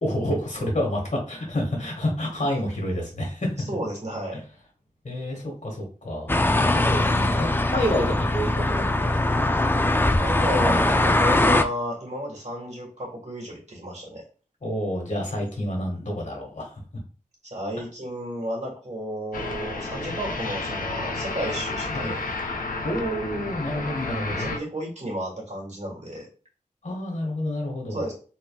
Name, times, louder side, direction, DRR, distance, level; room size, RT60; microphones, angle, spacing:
voice 1, 0.0-3.6 4.3-4.4 5.0-9.5 14.6-16.8 21.9-22.2 22.8-24.5 26.8-28.0, equal, 60° left, 0 dB, 1.7 m, -29 dB
voice 2, 3.7-4.4 10.2-14.2 17.4-22.2 24.3-26.3 27.9-28.1, right 1 dB, 55° right, -3 dB, 2.0 m, -32 dB
sound 1, 6.3-11.6, left 2 dB, 15° left, 0.4 m, -21 dB
sound 2, 19.3-24.6, left 3 dB, 85° left, 0.7 m, -31 dB
4.0 x 3.6 x 2.4 m, 0.39 s
cardioid pair, 45°, 14 cm